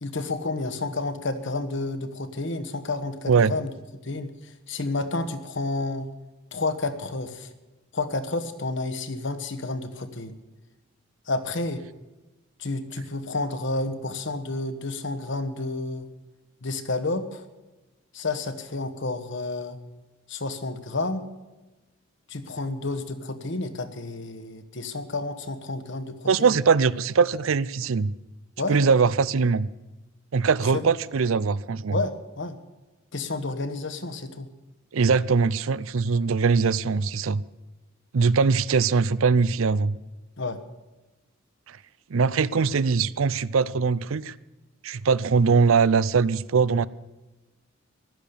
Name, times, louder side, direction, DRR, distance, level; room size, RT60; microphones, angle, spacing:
voice 1, 0.0-3.7 4.0-6.1 6.5-7.5 7.9-10.4 11.3-11.8 12.6-16.1 16.6-17.4 18.1-19.8 20.3-21.2 22.3-26.5 28.6-28.8 30.7-30.8 31.9-32.6 33.1-34.5 40.4-40.6, left 2 dB, 60° left, 10 dB, 1.3 m, -30 dB
voice 2, 26.3-28.1 28.7-29.7 30.3-32.0 34.9-37.4 38.1-40.0 42.1-44.3 44.8-46.9, right 5 dB, 75° right, 19 dB, 0.5 m, -21 dB
15.5 x 12.0 x 6.9 m, 1.1 s
head